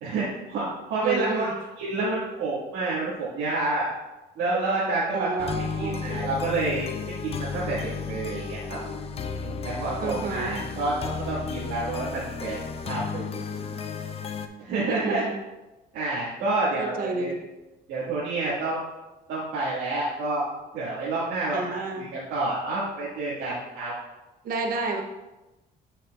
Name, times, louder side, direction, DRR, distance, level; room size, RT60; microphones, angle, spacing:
voice 1, 0.0-3.9 4.4-6.9 7.2-8.8 9.4-12.6 12.8-13.4 14.6-15.2 15.9-17.4 17.9-18.8 19.3-20.5 20.7-23.9, right 2 dB, 85° right, -9 dB, 1.9 m, -29 dB
voice 2, 1.0-1.5 5.1-6.1 10.0-10.6 14.8-15.3 16.8-17.4 21.5-22.1 24.4-25.0, right 3 dB, 60° right, 3 dB, 0.9 m, -30 dB
sound 1, 5.4-14.5, left 5 dB, 35° left, 0.5 m, -33 dB
8.2 x 5.6 x 2.4 m, 1.0 s
cardioid pair, 110°, 17 cm